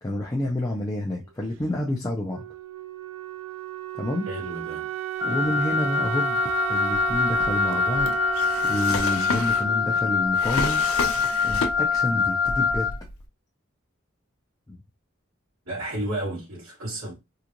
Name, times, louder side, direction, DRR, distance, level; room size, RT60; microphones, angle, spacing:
voice 1, 0.0-2.4 3.9-4.3 5.2-6.4 6.7-10.8 11.4-13.0 14.7-14.8, left 1 dB, 15° left, 0.5 m, -29 dB
Wind instrument woodwind instrument, 2.3-11.0, right 13 dB, 90° right, 0.4 m, -33 dB
voice 2, 4.3-4.9 15.7-17.1, right 1 dB, 70° right, 2.0 m, -32 dB
Wind instrument woodwind instrument 2, 5.2-13.0, left 5 dB, 15° right, 0.9 m, -25 dB
Drawer open or close, 6.9-12.1 12.4-13.2, left 3 dB, 85° left, 0.7 m, -32 dB
3.8 x 2.4 x 2.9 m
head